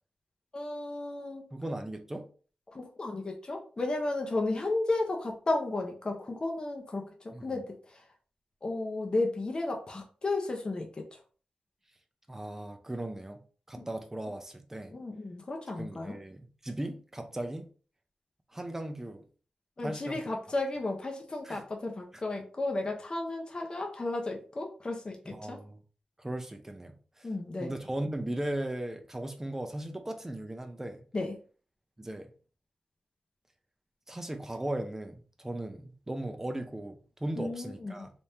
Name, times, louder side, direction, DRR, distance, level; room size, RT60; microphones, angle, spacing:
voice 1, 0.5-1.4 2.7-7.1 7.4-7.8 8.6-11.0 13.8-13.9 14.9-16.2 19.8-25.6 27.2-27.7 31.1-31.3 37.4-38.1, left 2 dB, 35° left, 0.8 m, -33 dB
voice 2, 1.5-2.3 7.3-7.4 12.3-13.4 13.7-14.9 15.8-17.7 18.5-19.2 19.8-20.2 21.4-21.6 22.1-22.2 25.3-25.8 26.2-27.3 27.6-31.0 32.0-32.3 34.1-38.1, right 1 dB, 15° right, 0.6 m, -37 dB
3.4 x 3.2 x 2.8 m
cardioid pair, 70°, 3 cm